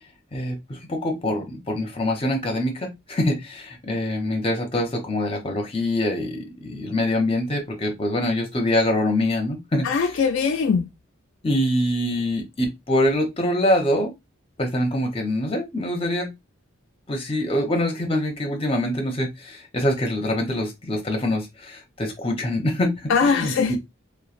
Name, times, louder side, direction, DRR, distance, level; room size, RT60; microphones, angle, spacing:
voice 1, 0.3-9.9 11.4-14.1 14.6-16.3 17.1-23.8, left 1 dB, 25° left, 0.7 m, -24 dB
voice 2, 9.8-10.9 23.1-23.8, left 5 dB, 65° left, 0.3 m, -21 dB
3.0 x 2.2 x 2.4 m
head